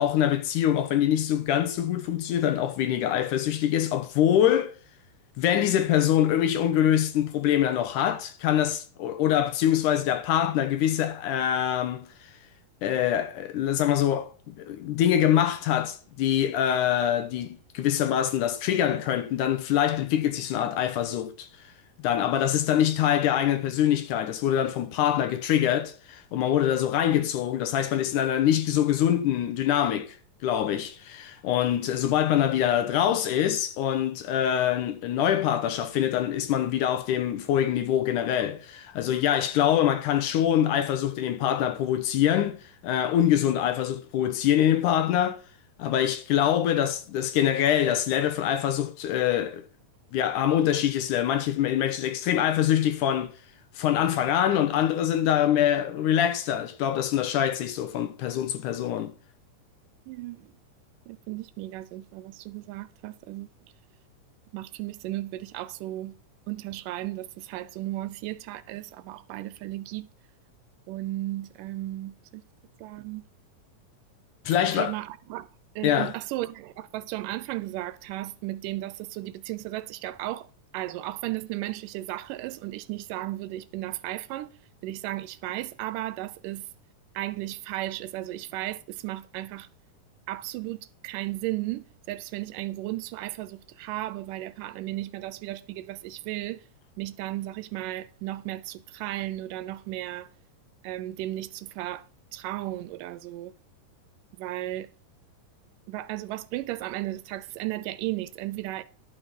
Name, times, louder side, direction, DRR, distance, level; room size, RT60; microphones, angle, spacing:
voice 1, 0.0-4.7 5.4-12.1 12.8-21.5 22.0-30.2 30.4-42.6 42.8-45.4 45.8-49.6 50.1-53.3 53.8-59.1 74.5-74.9 75.8-76.1, left 10 dB, 75° left, 2.2 m, -24 dB
voice 2, 60.1-60.5 61.1-63.5 64.5-66.2 66.5-70.1 70.9-72.4 72.8-73.2 74.7-75.5 75.8-80.5 80.7-84.5 84.8-86.7 87.2-89.7 90.3-96.6 97.0-100.3 100.8-102.0 102.3-103.5 104.4-104.9 105.9-108.8, right 16 dB, 80° right, 2.1 m, -35 dB
11.5 x 5.7 x 5.2 m
omnidirectional pair, 3.9 m